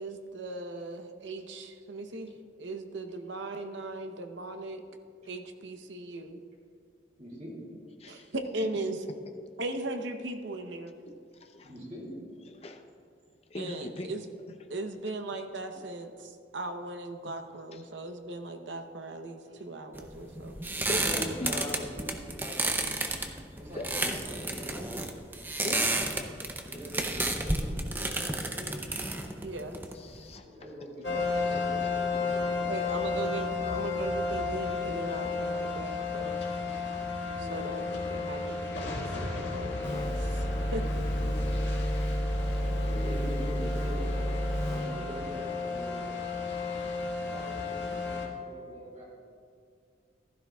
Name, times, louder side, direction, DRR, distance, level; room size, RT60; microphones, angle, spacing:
voice 1, 0.0-2.3 2.6-4.8 5.3-6.4 8.1-9.0 9.6-10.9 13.6-14.2 14.7-20.5 29.4-29.8 32.7-36.4 37.4-40.4 40.7-40.8, right 2 dB, 80° right, 6 dB, 0.9 m, -38 dB
voice 2, 7.2-7.5 11.6-12.1 20.8-22.8 23.6-25.0 26.6-28.8 30.3-33.8 37.4-38.2 42.8-44.1 44.7-46.2 47.3-49.0, equal, 40° right, -4 dB, 2.9 m, -43 dB
voice 3, 8.0-8.3 11.0-11.7 12.5-12.8 13.5-14.1 15.8-15.9 17.2-17.9 19.5-21.6 23.7-24.3 25.6-26.0 29.9-30.5 33.7-33.9, left 1 dB, 35° left, 5 dB, 0.7 m, -41 dB
sound 1, 20.0-30.3, right 2 dB, 10° right, 0.5 m, -32 dB
sound 2, 31.0-48.3, left 4 dB, 75° left, 1.7 m, -33 dB
sound 3, 39.8-45.2, equal, 10° left, 1.8 m, -30 dB
15.0 x 12.5 x 2.3 m, 2.2 s
head